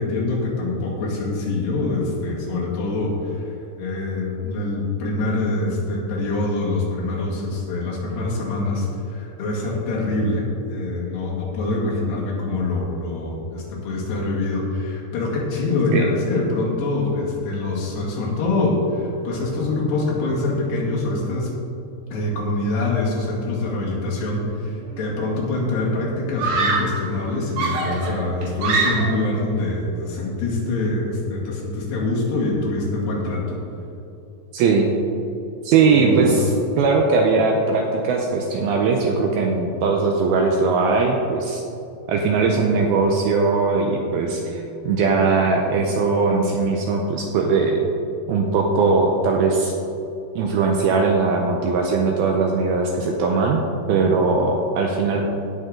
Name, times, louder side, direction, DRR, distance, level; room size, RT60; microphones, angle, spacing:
voice 1, 0.0-21.5 22.1-33.6 35.9-36.5, left 2 dB, 75° left, -5 dB, 4.2 m, -24 dB
Screaming, 24.8-25.3 26.4-27.0 27.6-29.3, right 3 dB, 60° right, 2.7 m, -24 dB
voice 2, 34.5-34.9 35.6-41.6 42.1-47.8 48.3-49.7 50.4-55.2, right 4 dB, 80° right, 2 dB, 2.3 m, -20 dB
17.0 x 6.7 x 3.8 m, 2.9 s
omnidirectional pair, 5.0 m